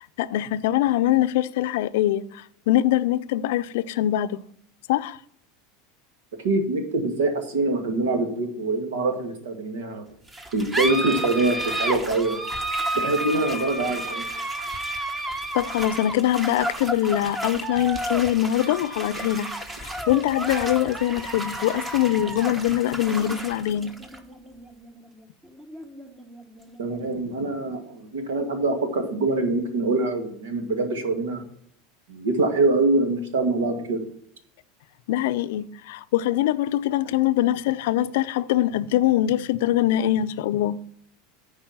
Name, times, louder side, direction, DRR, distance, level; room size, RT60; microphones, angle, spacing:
voice 1, 0.2-4.4 4.9-5.2 15.5-19.5 19.8-23.9 35.1-40.8, left 13 dB, 75° left, 0.5 m, -23 dB
voice 2, 6.4-10.0 10.5-12.4 13.0-14.2 26.8-31.4 32.1-34.0, right 2 dB, 90° right, 2.0 m, -24 dB
sound 1, 10.3-27.3, right 1 dB, 15° right, 1.1 m, -32 dB
10.0 x 4.8 x 6.0 m
supercardioid pair, 115°, 0 cm